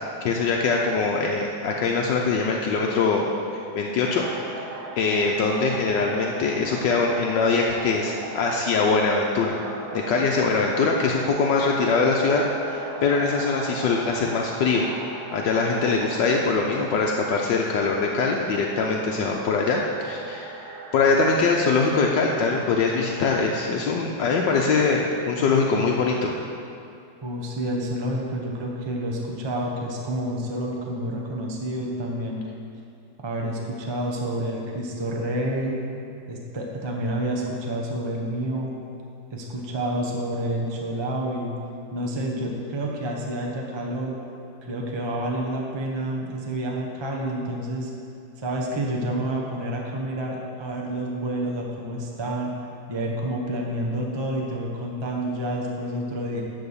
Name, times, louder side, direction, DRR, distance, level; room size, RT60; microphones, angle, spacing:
voice 1, 0.2-3.3 3.8-4.3 5.0-9.6 9.9-14.8 15.3-20.6 20.9-26.3, left 4 dB, 75° left, -1 dB, 1.3 m, -22 dB
sound 1, 4.1-23.6, right 3 dB, 65° right, 1.5 m, -38 dB
voice 2, 27.2-32.4 33.2-35.8 36.3-38.7 39.3-41.5 41.9-44.2 44.6-47.9 48.4-52.5 52.9-56.4, right 1 dB, 25° right, -2 dB, 0.5 m, -29 dB
10.5 x 4.0 x 7.1 m, 2.6 s
omnidirectional pair, 2.0 m